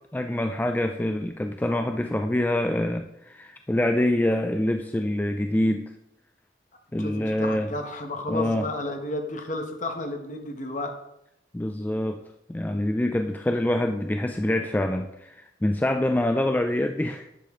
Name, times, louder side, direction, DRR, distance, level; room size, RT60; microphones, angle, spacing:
voice 1, 0.1-5.9 6.9-7.7 8.3-8.7 11.5-12.2 12.5-17.4, left 1 dB, 10° left, 6 dB, 0.3 m, -25 dB
voice 2, 7.0-10.9, left 2 dB, 45° left, 4 dB, 1.1 m, -32 dB
10.5 x 6.6 x 3.7 m, 0.82 s
head